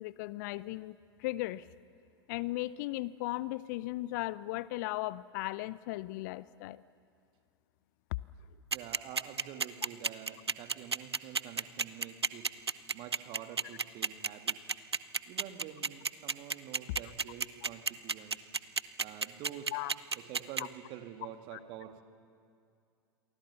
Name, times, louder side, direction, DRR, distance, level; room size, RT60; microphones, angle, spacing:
voice 1, 0.0-1.7 2.3-6.8 19.7-19.9 21.5-21.6, left 18 dB, 45° left, 20 dB, 0.5 m, -37 dB
voice 2, 8.7-12.5 12.9-14.6 15.3-18.5 19.0-19.7 20.1-22.0, right 10 dB, 40° right, 7 dB, 2.0 m, -47 dB
sound 1, 8.7-20.6, right 5 dB, 80° right, 0.7 m, -31 dB
28.5 x 23.5 x 7.1 m, 2.5 s
figure-of-eight pair, 90°, 13 cm